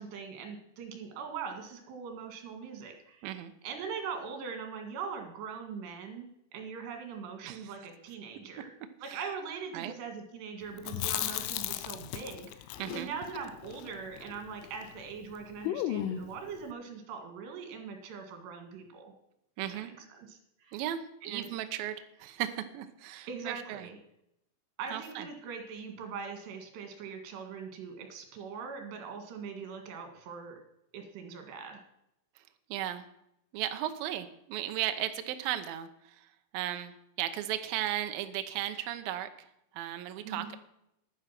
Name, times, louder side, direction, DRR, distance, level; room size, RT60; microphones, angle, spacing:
voice 1, 0.0-3.3 3.6-8.7 9.0-19.1 19.7-20.8 21.2-21.5 23.3-24.0 24.8-30.6 30.9-31.8 40.2-40.5, right 6 dB, 65° right, 5 dB, 4.0 m, -41 dB
voice 2, 3.2-3.5 7.4-7.7 9.1-9.2 9.7-9.9 12.8-13.1 19.6-19.9 20.7-23.9 24.9-25.3 32.4-32.5 32.7-33.1 33.5-39.5 39.7-40.6, right 12 dB, 85° right, 8 dB, 2.0 m, -36 dB
Chewing mastication, 10.8-15.0 15.2-15.3 15.6-16.4, left 13 dB, 90° left, 3.2 m, -36 dB
11.0 x 10.0 x 5.9 m, 0.78 s
omnidirectional pair, 5.5 m